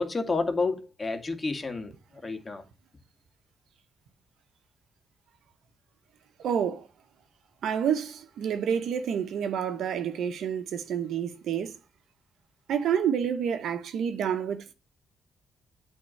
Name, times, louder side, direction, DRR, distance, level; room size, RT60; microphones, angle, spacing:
voice 1, 0.0-1.9 2.2-2.6, left 3 dB, 30° left, 2.1 m, -29 dB
voice 2, 6.4-6.9 7.6-11.7 12.7-14.7, right 8 dB, 75° right, 0.9 m, -29 dB
8.7 x 3.7 x 6.6 m
supercardioid pair, 60°, 0 cm